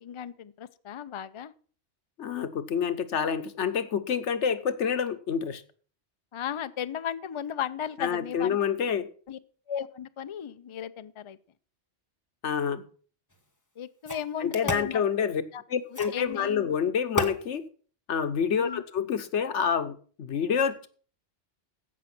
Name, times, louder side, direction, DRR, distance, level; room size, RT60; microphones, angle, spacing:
voice 1, 0.0-1.5 6.3-8.7 9.3-9.4 9.7-11.4 13.8-15.0 15.5-15.6 16.1-16.5 18.5-18.8, left 9 dB, 40° left, 13 dB, 0.4 m, -35 dB
voice 2, 2.2-5.6 8.0-9.1 12.4-12.8 14.4-15.4 15.7-17.6 18.1-20.9, left 7 dB, 85° left, 11 dB, 1.3 m, -28 dB
sound 1, 13.3-13.4 14.1-14.9 15.9-16.3 17.2-17.4, left 1 dB, 15° left, 1.3 m, -31 dB
15.5 x 5.9 x 6.0 m, 0.43 s
omnidirectional pair, 1.2 m